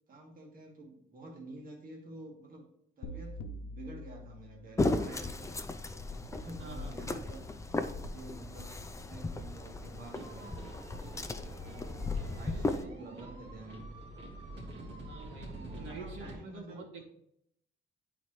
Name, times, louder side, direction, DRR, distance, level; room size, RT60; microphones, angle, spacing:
voice 1, 0.1-2.7 3.0-5.5 6.1-10.6 11.6-13.9 15.4-17.0, right 2 dB, 45° right, 0 dB, 1.5 m, -49 dB
sound 1, 3.0-5.1, left 1 dB, 90° left, 0.6 m, -45 dB
sound 2, 4.8-12.8, left 2 dB, 15° left, 0.5 m, -36 dB
voice 2, 6.6-7.2 12.5-12.9 15.0-17.0, right 4 dB, 80° right, -1 dB, 1.9 m, -47 dB
sound 3, 10.1-16.4, right 1 dB, 65° right, 1.9 m, -47 dB
9.3 x 4.1 x 3.1 m, 0.72 s
cardioid pair, 90°, 20 cm